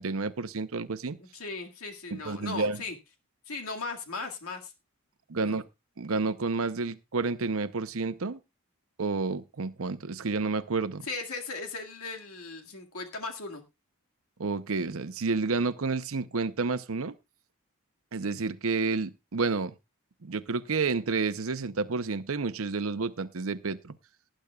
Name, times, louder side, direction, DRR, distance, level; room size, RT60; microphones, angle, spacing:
voice 1, 0.0-1.2 2.1-2.8 5.3-5.6 6.0-8.4 9.0-11.1 14.4-17.1 18.1-19.7 20.2-24.0, right 4 dB, 75° right, 12 dB, 0.7 m, -30 dB
voice 2, 1.2-3.0 3.5-4.7 5.3-5.6 11.0-13.6, left 3 dB, 80° left, 3 dB, 2.1 m, -37 dB
18.5 x 10.0 x 2.4 m, 0.25 s
head